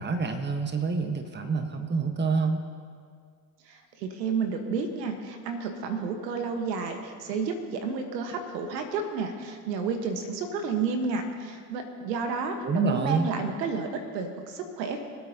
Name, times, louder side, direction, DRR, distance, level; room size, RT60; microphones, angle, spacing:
voice 1, 0.0-2.6 12.6-13.3, right 4 dB, 20° right, 6 dB, 1.3 m, -27 dB
voice 2, 3.7-15.0, right 5 dB, 80° right, 5 dB, 1.5 m, -31 dB
25.0 x 8.4 x 2.9 m, 2.1 s
hypercardioid pair, 75°, 49 cm